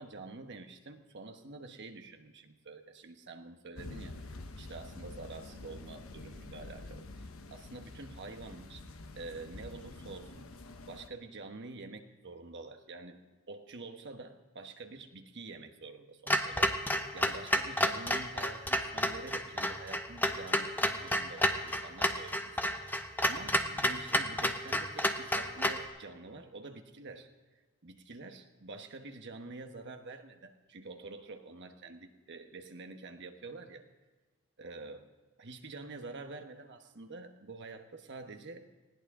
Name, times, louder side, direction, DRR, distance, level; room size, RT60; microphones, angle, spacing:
voice 1, 0.0-8.8 9.2-10.5 10.8-13.2 13.5-27.3 27.8-33.8 34.6-35.1 35.4-38.6, right 3 dB, 55° right, 5 dB, 1.2 m, -47 dB
sound 1, 3.8-11.1, left 2 dB, 70° left, 1.1 m, -47 dB
Clock, 16.3-25.9, left 1 dB, 10° left, 0.8 m, -30 dB
20.0 x 17.5 x 3.7 m, 1.2 s
head